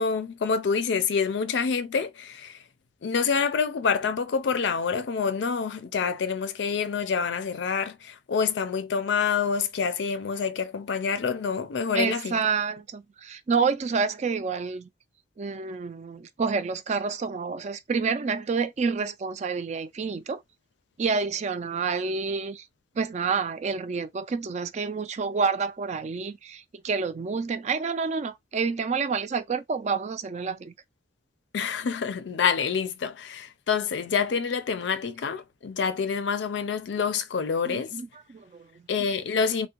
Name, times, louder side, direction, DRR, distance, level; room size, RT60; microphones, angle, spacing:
voice 1, 0.0-2.6 3.0-12.4 31.5-37.9 38.9-39.7, left 6 dB, 70° left, 0.4 m, -27 dB
voice 2, 11.9-14.9 15.4-20.4 21.0-22.7 23.0-30.7 37.6-38.9, right 5 dB, 40° right, 0.3 m, -28 dB
3.4 x 2.1 x 2.8 m
head